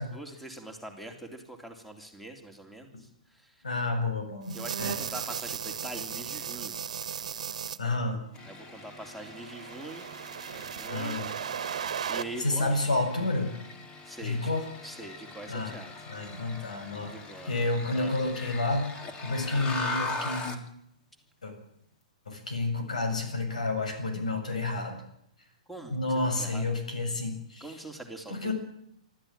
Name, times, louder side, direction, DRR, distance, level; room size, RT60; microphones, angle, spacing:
voice 1, 0.0-3.6 4.5-6.8 8.4-10.1 10.5-11.2 11.7-12.8 14.0-14.5 14.8-16.0 17.0-17.5 17.9-18.1 25.7-26.7 27.6-28.5, right 1 dB, ahead, 4 dB, 3.4 m, -43 dB
voice 2, 3.6-5.0 7.8-8.2 10.9-11.3 12.4-13.5 14.2-14.6 15.5-15.8 16.1-17.1 17.5-18.9 19.2-20.6 21.4-21.5 22.3-25.0 25.9-27.8 28.3-28.5, left 2 dB, 80° left, 5 dB, 7.3 m, -30 dB
sound 1, 4.5-7.8 8.9-12.2, right 8 dB, 65° right, 1.5 m, -36 dB
sound 2, 8.3-20.7, left 3 dB, 25° left, 3.2 m, -41 dB
26.0 x 13.5 x 9.0 m, 0.75 s
hypercardioid pair, 115°, 4 cm